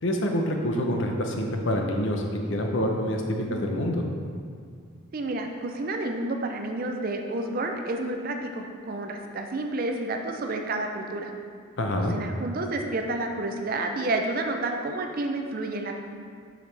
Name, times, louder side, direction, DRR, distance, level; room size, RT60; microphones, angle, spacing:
voice 1, 0.0-2.2 2.5-4.0 11.8-12.1, equal, 60° left, 2 dB, 0.7 m, -26 dB
voice 2, 5.1-11.3 12.1-16.0, right 2 dB, 45° right, 4 dB, 0.5 m, -30 dB
7.0 x 4.9 x 3.3 m, 2.1 s
head